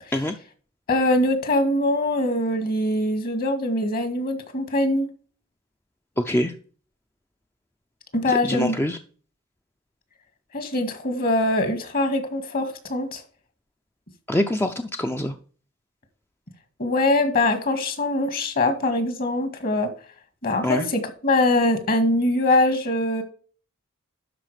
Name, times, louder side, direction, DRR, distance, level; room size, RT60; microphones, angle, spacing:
voice 1, 0.9-5.1 8.1-8.8 10.5-13.2 16.8-19.9 20.4-23.2, left 2 dB, 45° left, 8 dB, 2.0 m, -23 dB
voice 2, 6.2-6.5 8.4-9.0 14.3-15.4 20.6-20.9, left 1 dB, 10° left, 6 dB, 0.5 m, -24 dB
12.0 x 4.9 x 5.0 m, 0.41 s
head